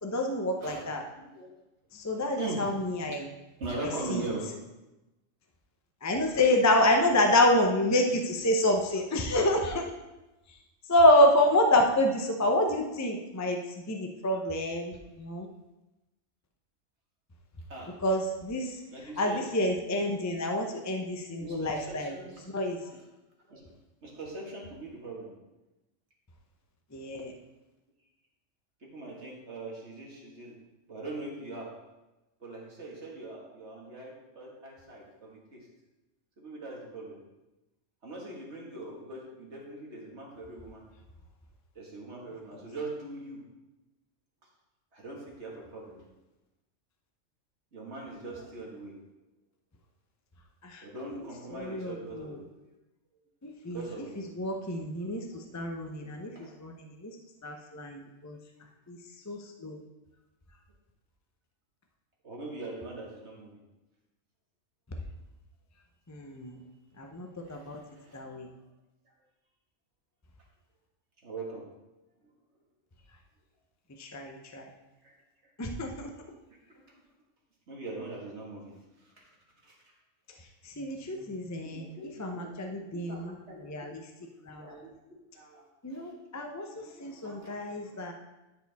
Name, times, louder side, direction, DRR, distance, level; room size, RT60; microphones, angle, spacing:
voice 1, 0.0-1.0 1.9-3.3 4.1-4.2 6.0-9.8 10.9-13.6 13.9-15.5 18.0-18.7 19.2-22.1 22.5-22.8 26.9-27.3 50.6-50.8 51.5-52.4 53.4-53.8 54.4-55.2 55.5-56.3 56.6-56.7 57.0-57.1 57.4-58.4 58.9-59.0 59.3-59.8 66.1-66.6 67.0-67.8 68.1-68.5 74.0-74.7 75.6-76.1 80.8-81.9 82.2-83.3 83.6-83.9 84.5-84.7 85.8-86.7 87.0-88.1, left 1 dB, 20° left, 3 dB, 0.5 m, -27 dB
voice 2, 0.6-1.5 2.4-2.7 3.6-4.5 17.7-17.9 18.9-19.6 21.4-23.1 23.5-23.7 24.0-25.3 28.8-30.6 30.9-31.7 32.4-35.7 36.4-37.2 38.0-40.9 41.8-43.4 44.9-46.0 47.7-49.0 50.8-52.4 53.6-54.2 55.3-56.6 62.2-63.6 67.4-68.2 69.1-69.2 71.2-71.6 72.2-72.3 75.0-75.1 75.4-75.5 77.7-79.3 79.6-79.8 81.7-83.6 84.4-84.9 85.3-85.7 85.9-86.1 86.8-87.6, right 2 dB, 60° right, -2 dB, 2.1 m, -41 dB
13.0 x 4.9 x 3.5 m, 1.0 s
omnidirectional pair, 1.3 m